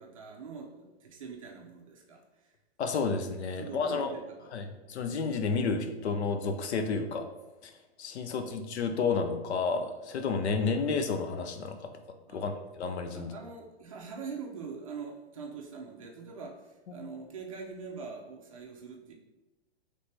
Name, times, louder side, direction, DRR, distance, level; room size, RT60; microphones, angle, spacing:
voice 1, 0.0-2.5 3.6-5.0 8.2-8.9 12.3-12.5 13.1-19.1, right 5 dB, 30° right, 1 dB, 0.5 m, -44 dB
voice 2, 2.8-4.1 4.5-7.3 7.6-7.7 8.0-11.9 12.3-12.5 12.8-13.3 16.9-17.0, left 4 dB, 85° left, 7 dB, 0.6 m, -31 dB
4.1 x 3.3 x 3.3 m, 1.1 s
hypercardioid pair, 180°, 32 cm